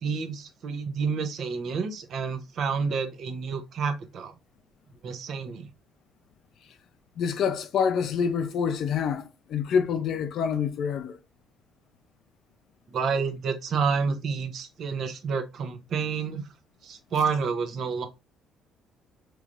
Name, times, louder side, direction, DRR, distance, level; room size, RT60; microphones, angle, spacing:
voice 1, 0.0-4.3 5.0-5.7 12.9-16.4 16.8-18.1, right 5 dB, 50° right, 0.7 m, -29 dB
voice 2, 7.2-11.2, left 7 dB, 55° left, 0.6 m, -27 dB
4.8 x 3.1 x 2.5 m
cardioid pair, 155°, 0 cm